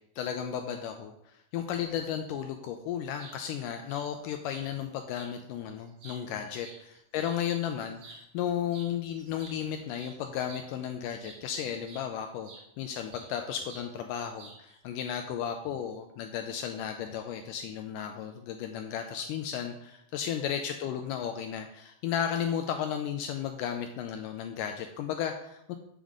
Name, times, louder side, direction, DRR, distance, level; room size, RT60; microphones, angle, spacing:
voice 1, 0.2-12.5 12.8-25.8, left 9 dB, 85° left, 5 dB, 1.9 m, -34 dB
sound 1, 3.2-3.4 3.9-4.1 4.5-4.7 5.1-5.3 5.8-7.4 7.9-8.2 8.7-8.9 9.2-11.5 11.8-12.1 12.4-13.3 13.7-13.9 14.4-14.8, right 4 dB, 80° right, 4.4 m, -50 dB
8.5 x 3.6 x 5.3 m, 0.80 s
omnidirectional pair, 4.2 m